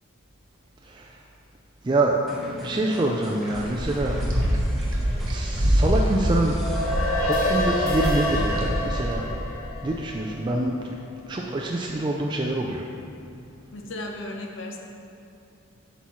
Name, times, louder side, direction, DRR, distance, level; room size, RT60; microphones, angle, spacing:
voice 1, 0.8-1.2 1.8-4.2 5.3-6.6 6.9-9.3 9.8-10.8 11.3-12.9, right 2 dB, 20° right, -1 dB, 0.3 m, -26 dB
sound 1, 2.3-7.9, left 1 dB, ahead, 0.7 m, -42 dB
sound 2, 3.5-9.1, equal, 80° right, 1.1 m, -25 dB
sound 3, 6.4-11.0, left 1 dB, 85° left, 1.1 m, -27 dB
voice 2, 13.7-14.8, left 1 dB, 60° left, 2 dB, 0.8 m, -35 dB
8.1 x 5.7 x 3.1 m, 2.5 s
head